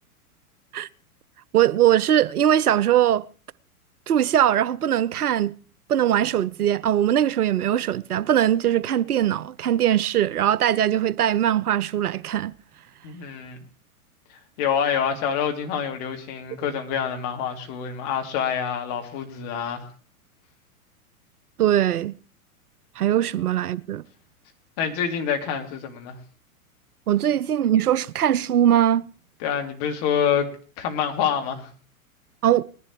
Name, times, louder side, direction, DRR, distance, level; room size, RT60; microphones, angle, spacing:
voice 1, 1.5-3.3 4.1-5.5 5.9-12.5 21.6-22.1 23.0-24.0 27.1-29.0 32.4-32.6, right 11 dB, 75° right, 0.6 m, -21 dB
voice 2, 13.0-13.6 14.6-19.9 24.8-26.2 29.4-30.5 30.8-31.7, left 8 dB, 40° left, 2.2 m, -26 dB
20.5 x 11.0 x 3.1 m
figure-of-eight pair, 100°, 45 cm